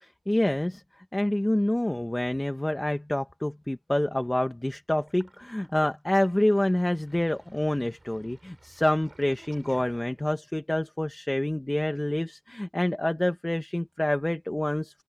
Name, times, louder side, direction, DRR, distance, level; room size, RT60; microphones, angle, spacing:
voice 1, 0.0-0.8 1.1-15.0, left 1 dB, 10° left, 1.2 m, -27 dB
Sink (filling or washing), 4.9-10.5, right 2 dB, 20° right, 4.4 m, -54 dB
open air
wide cardioid pair, 150°, 0 cm